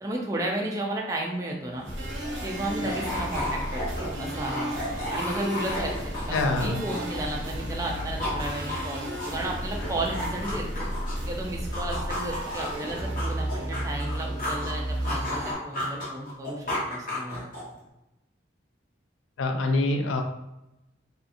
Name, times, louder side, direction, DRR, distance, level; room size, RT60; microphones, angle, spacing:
voice 1, 0.0-1.9 2.4-10.9 11.3-17.5, right 1 dB, 15° right, -1 dB, 0.4 m, -33 dB
sound 1, 1.6-7.5 7.8-11.3 11.7-14.7 15.0-17.8, left 1 dB, 45° left, 0.9 m, -34 dB
sound 2, 1.8-15.5, equal, 70° right, 0.9 m, -33 dB
voice 2, 6.3-6.8 19.4-20.2, left 2 dB, 85° left, 4 dB, 0.4 m, -25 dB
2.7 x 2.4 x 2.4 m, 0.92 s
head